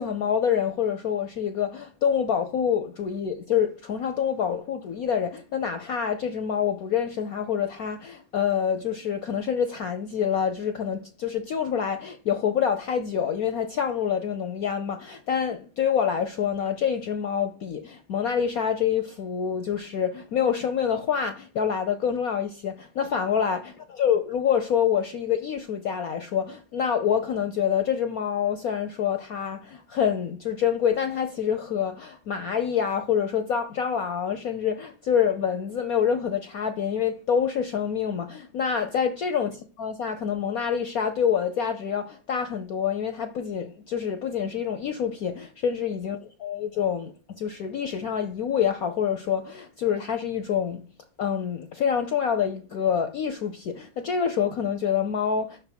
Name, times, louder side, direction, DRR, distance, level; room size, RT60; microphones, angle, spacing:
voice 1, 0.0-23.6 24.0-50.8 51.2-55.6, left 8 dB, 70° left, 0.8 m, -26 dB
5.9 x 5.7 x 6.8 m
omnidirectional pair, 2.3 m